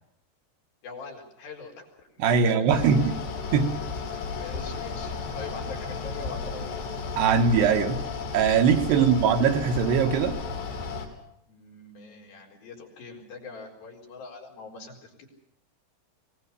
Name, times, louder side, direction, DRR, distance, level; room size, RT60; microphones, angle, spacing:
voice 1, 0.8-1.9 2.3-2.8 4.1-6.9 8.9-9.1 11.5-15.3, left 4 dB, 60° left, 0 dB, 6.0 m, -42 dB
voice 2, 2.2-3.2 3.5-3.7 7.2-8.0 8.3-10.4, right 6 dB, 80° right, 5 dB, 3.5 m, -21 dB
Mechanical fan, 2.7-11.1, left 4 dB, 85° left, 5.6 m, -34 dB
24.5 x 19.0 x 6.9 m, 0.77 s
omnidirectional pair, 4.7 m